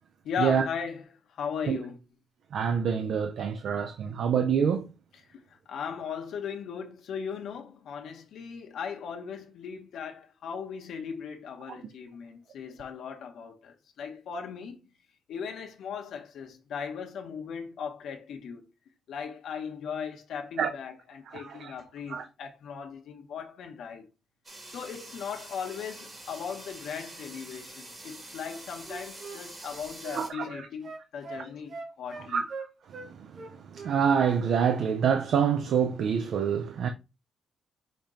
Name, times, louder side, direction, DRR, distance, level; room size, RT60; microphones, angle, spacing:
voice 1, 0.2-2.0 5.3-14.8 15.3-18.7 19.1-24.1 24.7-32.4, left 6 dB, 70° left, 0.8 m, -38 dB
voice 2, 2.5-4.9 20.6-20.7 21.3-21.7 22.1-22.2 30.2-30.5 31.4-31.5 32.3-32.4 33.0-36.9, right 7 dB, 60° right, 0.5 m, -26 dB
sound 1, 24.5-30.3, right 1 dB, 20° right, 1.3 m, -46 dB
Wind instrument woodwind instrument, 28.4-33.1 33.3-34.4 34.7-34.9, right 4 dB, 40° right, 0.9 m, -42 dB
5.2 x 2.8 x 3.6 m
cardioid pair, 140°, 0 cm